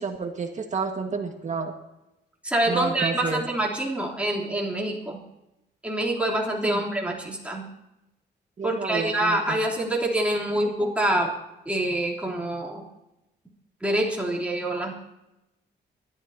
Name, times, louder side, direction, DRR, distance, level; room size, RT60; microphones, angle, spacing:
voice 1, 0.0-1.7 2.7-3.4 6.6-6.8 8.6-9.4, right 4 dB, 45° right, 3 dB, 1.8 m, -30 dB
voice 2, 2.4-5.2 5.8-7.7 8.6-11.3 11.7-12.8 13.8-14.9, right 1 dB, 5° right, -4 dB, 3.4 m, -26 dB
24.5 x 12.5 x 2.9 m, 0.91 s
cardioid pair, 115°, 18 cm